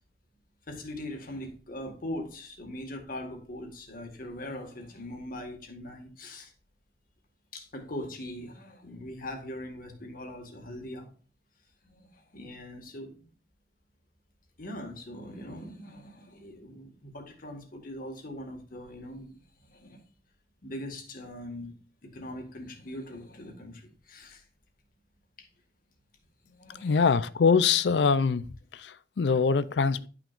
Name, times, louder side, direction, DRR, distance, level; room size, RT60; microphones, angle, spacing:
voice 1, 0.7-6.5 7.5-11.1 11.8-13.3 14.6-19.4 19.7-20.0 20.6-21.7 22.0-24.4 25.4-25.5 26.4-27.2, left 1 dB, 55° left, 1.7 m, -41 dB
voice 2, 26.8-28.4 28.7-30.1, left 5 dB, 75° left, 0.4 m, -23 dB
11.0 x 5.9 x 2.5 m
head